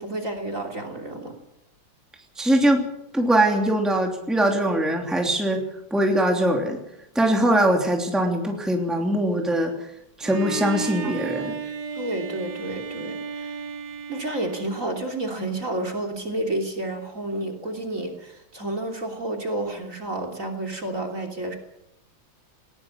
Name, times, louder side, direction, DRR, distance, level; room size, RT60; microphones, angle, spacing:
voice 1, 0.0-1.4 11.0-11.1 11.6-13.6 14.1-21.6, right 1 dB, 40° right, 2 dB, 3.5 m, -30 dB
voice 2, 2.4-2.9 3.1-5.6 5.9-6.8 7.1-9.9 10.2-11.6, right 1 dB, ahead, 2 dB, 2.9 m, -22 dB
Bowed string instrument, 10.2-15.2, right 5 dB, 55° right, 2.1 m, -34 dB
20.0 x 18.5 x 7.2 m, 0.80 s
omnidirectional pair, 2.3 m